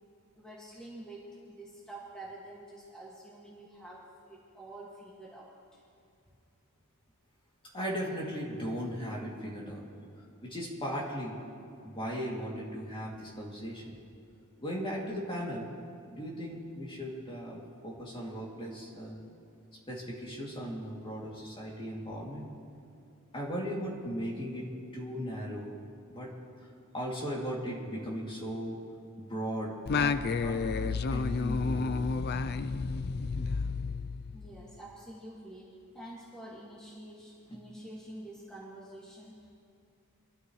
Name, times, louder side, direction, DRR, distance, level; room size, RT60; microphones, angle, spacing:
voice 1, 0.4-5.8 34.3-39.5, right 1 dB, 5° left, -7 dB, 2.0 m, -48 dB
voice 2, 7.7-9.8 10.4-11.4 11.8-14.0 14.6-15.7 16.1-19.2 19.9-22.5 23.3-25.7 26.1-26.3 26.6-26.7 26.9-28.8 29.2-32.1 37.5-37.6, equal, 25° left, -4 dB, 2.7 m, -37 dB
Singing, 29.9-34.6, left 4 dB, 45° left, 0.4 m, -31 dB
25.0 x 13.5 x 3.2 m, 2.5 s
head